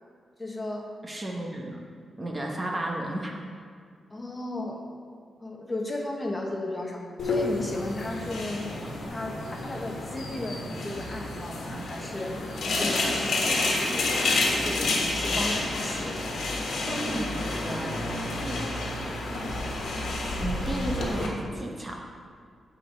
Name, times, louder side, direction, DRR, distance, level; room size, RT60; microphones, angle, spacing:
voice 1, 0.4-0.9 4.1-4.8 5.4-8.7 9.1-12.4 12.6-16.4 19.9-20.1, left 2 dB, 20° left, 0 dB, 1.0 m, -35 dB
voice 2, 1.0-1.8 2.2-3.4 16.8-18.0 18.4-18.7 20.4-22.0, right 1 dB, 20° right, 0 dB, 0.9 m, -33 dB
sound 1, 7.2-21.3, left 2 dB, 75° left, 1.5 m, -29 dB
9.1 x 5.3 x 4.2 m, 2.1 s
cardioid pair, 105°, 0 cm